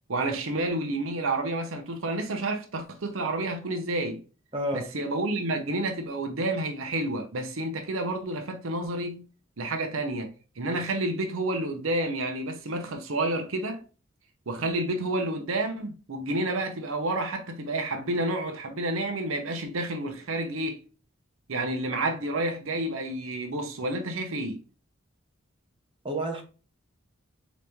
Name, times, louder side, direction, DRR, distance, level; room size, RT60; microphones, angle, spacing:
voice 1, 0.1-4.2 4.7-9.2 9.6-10.3 10.6-13.8 14.5-20.8 21.5-24.6, right 2 dB, 80° right, 0.8 m, -30 dB
voice 2, 4.5-4.9 26.0-26.4, right 1 dB, 25° right, 0.9 m, -29 dB
4.0 x 3.1 x 3.5 m
head